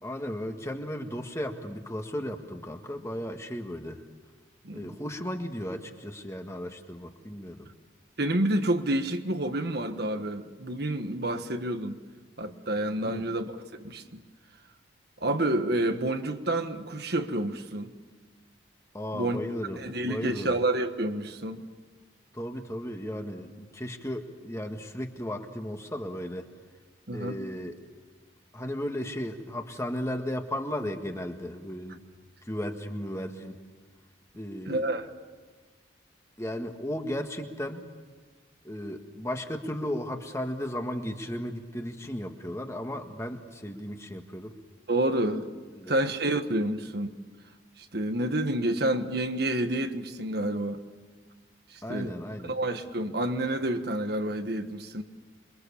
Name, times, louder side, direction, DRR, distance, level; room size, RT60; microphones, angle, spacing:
voice 1, 0.0-4.0 4.7-7.7 13.0-13.2 18.9-19.8 20.1-20.6 22.3-26.5 27.1-27.8 28.5-32.0 32.4-33.6 34.4-34.9 36.4-37.9 38.6-44.5 45.7-46.0 51.8-52.6, equal, 15° left, 1.8 m, -35 dB
voice 2, 8.2-12.0 12.4-14.2 15.2-17.9 19.1-19.4 19.8-21.6 27.1-27.4 34.7-35.1 44.9-45.5 45.9-47.1 47.8-50.8 51.7-55.0, right 1 dB, 55° right, 1.5 m, -29 dB
27.5 x 23.5 x 7.2 m
head